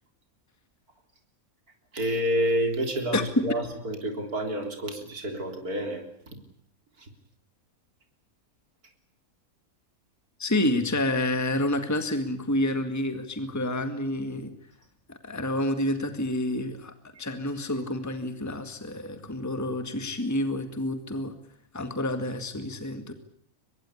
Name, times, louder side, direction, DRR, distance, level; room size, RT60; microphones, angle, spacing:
voice 1, 1.9-6.0 7.0-7.1, equal, 85° right, 5 dB, 4.1 m, -29 dB
voice 2, 10.4-14.5 15.1-16.9 17.2-21.3 21.7-23.1, left 1 dB, 10° left, 8 dB, 1.9 m, -29 dB
24.5 x 21.5 x 8.5 m, 0.65 s
omnidirectional pair, 1.5 m